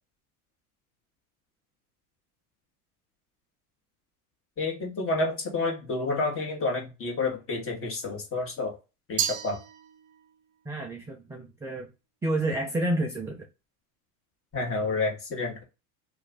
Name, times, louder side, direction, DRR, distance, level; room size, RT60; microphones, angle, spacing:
voice 1, 4.6-8.8 9.1-9.6 14.5-15.6, left 3 dB, 30° left, 0 dB, 1.5 m, -29 dB
Glass, 9.2-10.4, right 9 dB, 40° right, 0.6 m, -32 dB
voice 2, 10.7-11.9 12.2-13.5, right 1 dB, 5° right, 1 dB, 0.3 m, -29 dB
3.0 x 2.4 x 3.8 m, 0.27 s
supercardioid pair, 105°, 45 cm